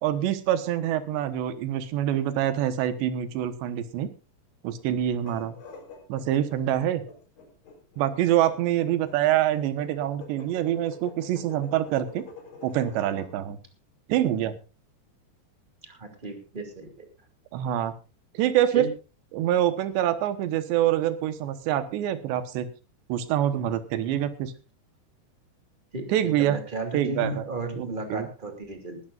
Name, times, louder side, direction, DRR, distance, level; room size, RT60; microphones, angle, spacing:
voice 1, 0.0-4.1 4.6-5.6 6.1-7.0 8.0-12.3 12.6-13.6 14.1-14.6 17.5-17.9 18.3-18.9 19.3-22.7 23.1-24.5 26.1-26.6 26.9-27.4 27.8-28.3, right 12 dB, 80° right, 12 dB, 3.5 m, -25 dB
sound 1, 5.1-13.3, left 4 dB, 55° left, 5.5 m, -46 dB
voice 2, 15.8-17.1 18.7-18.9 25.9-26.1 26.4-29.0, right 2 dB, 15° right, 5 dB, 2.1 m, -34 dB
20.0 x 14.0 x 2.5 m, 0.31 s
omnidirectional pair, 4.9 m